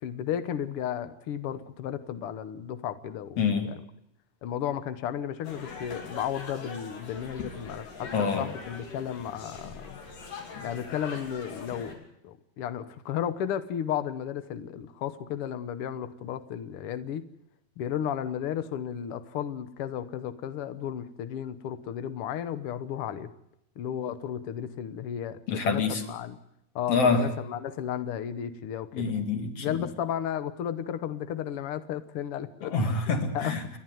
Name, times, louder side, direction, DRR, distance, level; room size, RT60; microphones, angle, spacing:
voice 1, 0.0-3.8 4.4-10.0 10.6-12.0 12.2-17.3 17.8-23.3 23.8-25.4 25.6-26.4 26.7-29.1 29.6-32.7 33.3-33.5, left 9 dB, 90° left, 12 dB, 1.2 m, -33 dB
voice 2, 3.4-3.7 8.1-8.5 25.5-26.0 26.9-27.3 28.9-29.8 32.6-33.6, left 4 dB, 45° left, 6 dB, 3.0 m, -26 dB
sound 1, 5.4-11.9, left 4 dB, 65° left, 4.6 m, -42 dB
29.5 x 11.0 x 9.3 m, 0.79 s
omnidirectional pair, 4.1 m